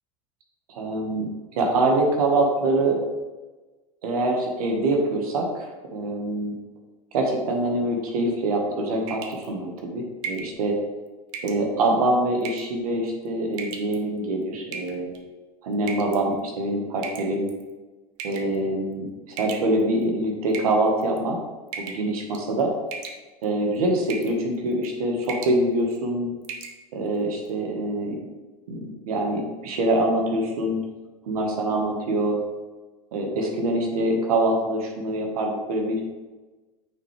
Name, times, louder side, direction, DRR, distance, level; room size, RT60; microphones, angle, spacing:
voice 1, 0.7-3.0 4.0-6.5 7.1-10.8 11.4-15.1 15.6-17.5 18.2-21.4 21.8-22.7 23.4-26.3 26.9-28.2 28.7-30.8 31.3-32.4 33.1-36.0, right 1 dB, 85° right, 1 dB, 1.4 m, -24 dB
sound 1, 9.1-9.5 10.2-10.5 11.3-11.6 12.4-12.8 13.5-14.0 14.7-15.2 15.9-16.2 17.0-17.6 18.2-18.6 19.4-20.0 20.5-21.2 21.7-22.1 22.3-22.6 22.9-23.5 24.1-24.4 24.7-24.9 25.2-25.6 26.0-26.1 26.4-26.8, right 5 dB, 60° right, 1.0 m, -36 dB
8.9 x 4.5 x 3.3 m, 1.2 s
hypercardioid pair, 105°, 18 cm